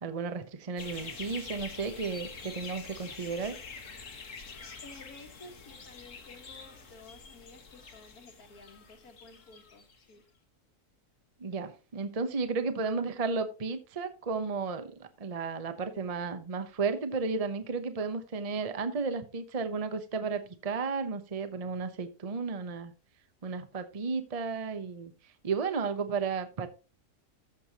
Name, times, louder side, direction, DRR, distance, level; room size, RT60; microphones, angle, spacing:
voice 1, 0.0-3.6 11.4-22.9 23.4-25.1 25.4-26.7, right 4 dB, 30° right, 9 dB, 0.8 m, -33 dB
sound 1, 0.8-10.1, left 4 dB, 55° left, 1.7 m, -46 dB
voice 2, 4.4-10.3, left 3 dB, 75° left, 4 dB, 2.1 m, -53 dB
14.0 x 6.6 x 2.9 m, 0.31 s
omnidirectional pair, 1.6 m